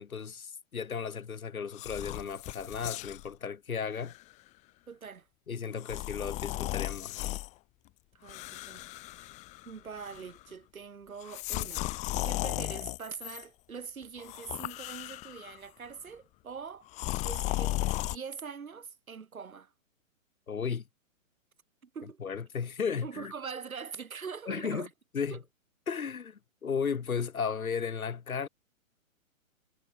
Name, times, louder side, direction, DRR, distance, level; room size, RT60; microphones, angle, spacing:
voice 1, 0.0-4.1 5.5-7.2 20.5-20.8 22.2-23.3 24.5-24.9 25.1-25.4 25.9-28.5, left 6 dB, 85° left, 3.4 m, -34 dB
sound 1, 1.7-3.3 4.0-4.2 5.8-7.5 8.3-9.7 10.0-10.4 11.2-13.4 14.2-15.6 16.9-18.2, left 19 dB, 15° left, 1.1 m, -35 dB
voice 2, 4.9-5.3 8.2-8.8 9.1-9.3 9.7-12.0 12.2-16.9 17.2-19.7 21.8-22.2 23.0-24.9 25.3-25.4, right 6 dB, 85° right, 7.4 m, -43 dB
hypercardioid pair, 145°, 41 cm